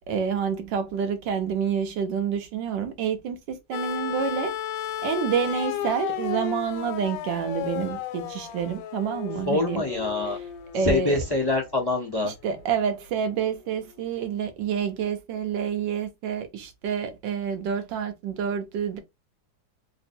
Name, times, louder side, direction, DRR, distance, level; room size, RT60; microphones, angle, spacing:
voice 1, 0.1-4.5 5.0-9.8 10.7-11.2 12.2-19.0, right 7 dB, 75° right, 1.4 m, -28 dB
sound 1, 3.7-11.8 13.1-13.2, left 10 dB, 90° left, 1.3 m, -34 dB
voice 2, 9.4-10.4 10.8-12.3, left 2 dB, 20° left, 0.8 m, -25 dB
3.5 x 2.0 x 4.3 m
omnidirectional pair, 2.0 m